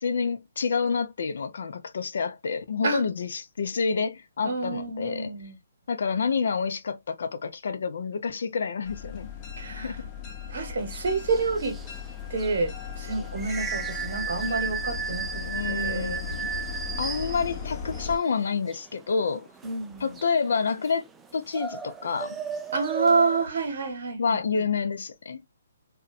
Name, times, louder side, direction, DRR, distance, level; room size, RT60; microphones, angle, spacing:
voice 1, 0.0-5.4 5.9-9.3 9.7-10.0 15.4-16.5 17.0-19.5 20.0-21.0 21.3-22.4 24.2-25.4, left 5 dB, 65° left, 0.5 m, -28 dB
voice 2, 4.4-5.6 9.6-10.0 10.5-11.8 12.3-16.3 19.6-20.2 22.7-24.6, right 4 dB, 60° right, 1.0 m, -28 dB
sound 1, 8.8-18.2, left 7 dB, 30° left, 0.7 m, -37 dB
sound 2, 10.8-23.5, right 6 dB, 10° right, 0.3 m, -36 dB
2.7 x 2.2 x 2.4 m
hypercardioid pair, 140°, 0 cm